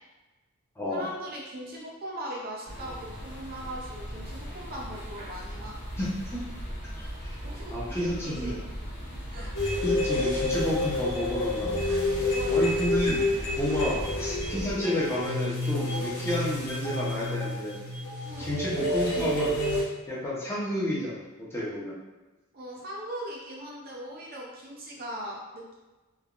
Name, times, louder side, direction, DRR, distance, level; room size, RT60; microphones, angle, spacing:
voice 1, 0.9-5.8 7.0-7.1 7.4-8.5 9.1-9.5 10.0-10.2 12.2-12.8 13.8-13.9 18.3-18.5 22.5-25.7, right 1 dB, 40° right, -2 dB, 0.5 m, -40 dB
sound 1, 2.6-14.8, equal, 45° left, 1.2 m, -38 dB
voice 2, 6.0-6.4 7.2-7.4 7.7-8.6 9.8-12.0 12.5-17.8 18.4-19.6 20.1-22.0, left 1 dB, 10° left, -7 dB, 0.6 m, -31 dB
sound 2, 9.5-19.8, left 2 dB, 70° left, 0.9 m, -29 dB
3.3 x 2.2 x 2.4 m, 1.1 s
head